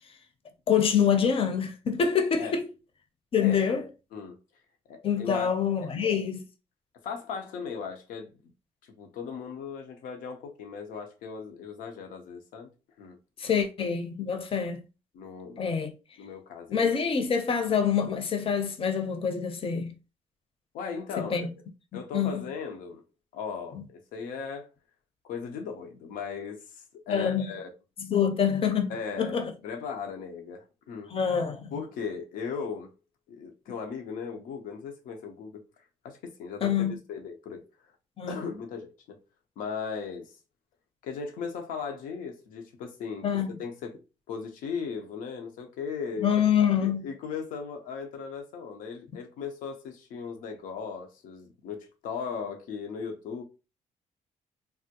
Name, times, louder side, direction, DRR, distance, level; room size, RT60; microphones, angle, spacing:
voice 1, 0.7-2.7 3.3-3.8 5.0-6.4 13.4-14.8 15.6-15.9 16.7-19.9 21.2-21.5 21.9-22.4 27.1-27.5 28.0-29.5 31.1-31.7 36.6-36.9 38.2-38.4 43.2-43.6 46.2-47.1, left 7 dB, 45° left, 0.6 m, -26 dB
voice 2, 4.9-5.5 5.8-5.9 7.0-8.4 8.8-12.7 13.0-13.2 13.5-13.7 15.1-15.6 16.2-16.8 20.7-21.5 21.9-23.0 23.3-23.8 24.1-24.7 25.2-27.7 28.9-31.1 31.7-32.9 33.3-35.6 36.0-37.6 38.3-39.2 39.6-40.4 41.0-43.3 43.6-44.0 44.3-46.3 46.8-53.4, left 6 dB, 85° left, 0.6 m, -37 dB
3.4 x 2.1 x 2.8 m
cardioid pair, 75°, 14 cm